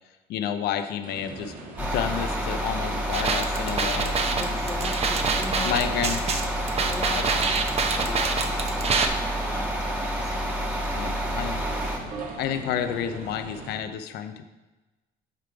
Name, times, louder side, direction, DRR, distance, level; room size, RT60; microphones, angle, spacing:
voice 1, 0.3-4.6 5.6-6.2 10.9-11.6 12.4-14.4, left 9 dB, 75° left, 8 dB, 0.6 m, -30 dB
sound 1, 1.0-13.8, right 2 dB, 55° right, 1.6 m, -40 dB
sound 2, 1.8-12.0, right 1 dB, 10° right, 1.3 m, -29 dB
sound 3, 3.1-9.1, right 5 dB, 40° right, 0.8 m, -26 dB
voice 2, 4.4-5.8 6.8-7.6 7.9-10.5, left 3 dB, 15° left, 6 dB, 0.8 m, -38 dB
9.1 x 3.7 x 4.8 m, 1.1 s
cardioid pair, 110°, 17 cm